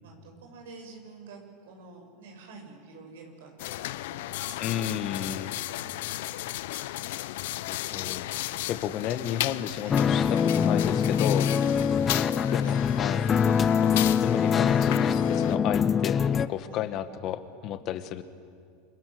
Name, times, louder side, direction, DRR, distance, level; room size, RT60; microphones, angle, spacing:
voice 1, 0.0-4.9 5.5-6.0 8.5-8.9 9.8-10.0 12.1-12.7 16.6-16.8, right 3 dB, 80° right, 3 dB, 7.0 m, -49 dB
sound 1, 3.6-15.6, left 16 dB, 75° left, 0.7 m, -35 dB
voice 2, 4.6-5.5 7.3-11.5 12.5-13.2 13.8-18.2, left 10 dB, 50° left, 10 dB, 1.8 m, -33 dB
sound 2, 9.9-16.5, left 7 dB, 30° left, 0.7 m, -24 dB
28.5 x 24.5 x 8.0 m, 2.2 s
hypercardioid pair, 110°, 0 cm